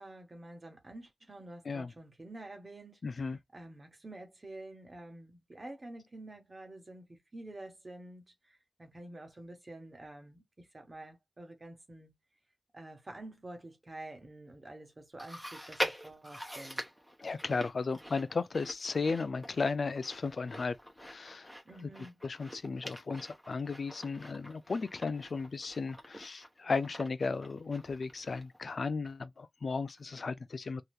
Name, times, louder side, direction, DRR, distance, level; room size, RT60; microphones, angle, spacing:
voice 1, 0.0-3.0 3.5-12.1 12.7-16.8 21.6-22.2, right 2 dB, 45° right, 1.3 m, -48 dB
voice 2, 3.0-3.4 17.2-21.5 22.2-30.8, left 4 dB, 85° left, 0.3 m, -35 dB
Chewing mastication, 15.2-28.7 29.0-29.1 30.0-30.1, equal, 5° right, 0.9 m, -44 dB
2.9 x 2.3 x 3.3 m
wide cardioid pair, 70°, 0 cm